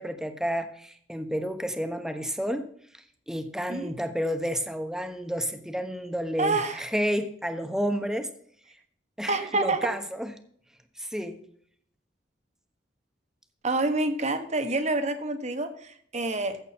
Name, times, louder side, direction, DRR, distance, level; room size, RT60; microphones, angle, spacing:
voice 1, 0.0-2.7 3.3-8.3 9.2-10.3 11.0-11.4, equal, 5° right, 7 dB, 1.1 m, -30 dB
voice 2, 6.4-6.9 9.3-9.9 13.6-16.6, right 2 dB, 40° right, 8 dB, 1.3 m, -27 dB
14.5 x 8.0 x 4.4 m, 0.63 s
head